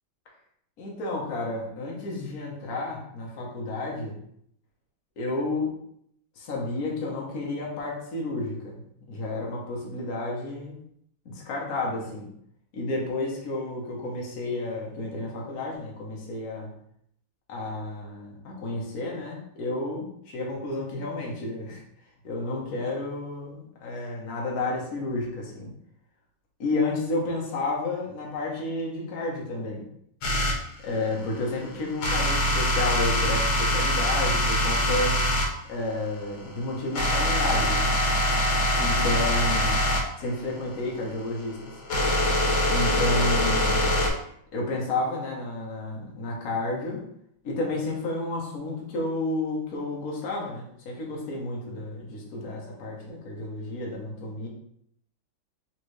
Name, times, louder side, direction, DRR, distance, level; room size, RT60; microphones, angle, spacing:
voice 1, 0.8-4.1 5.2-5.7 6.4-10.8 11.2-12.3 12.7-16.7 17.5-21.8 22.2-25.7 26.6-29.8 30.8-35.2 35.7-37.9 38.8-39.8 40.2-41.8 42.7-44.0 44.5-47.0 47.4-54.5, left 2 dB, 50° left, -2 dB, 1.3 m, -31 dB
sound 1, 30.2-30.6 32.0-35.5 36.1-44.1, left 1 dB, 80° left, 1.7 m, -24 dB
4.3 x 3.2 x 3.1 m, 0.70 s
omnidirectional pair, 2.2 m